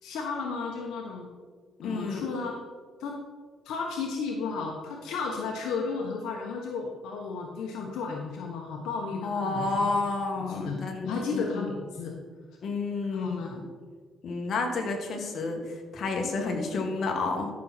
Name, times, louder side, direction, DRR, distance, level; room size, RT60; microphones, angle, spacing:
voice 1, 0.0-1.3 1.8-2.6 3.0-3.2 3.6-9.9 10.4-10.8 11.0-12.2 13.1-13.6, left 4 dB, 85° left, 1 dB, 1.2 m, -33 dB
voice 2, 1.8-2.2 9.2-11.7 12.6-13.6 14.2-17.5, left 3 dB, 60° left, 2 dB, 2.0 m, -30 dB
13.0 x 6.3 x 4.4 m, 1.6 s
cardioid pair, 90°, 0 cm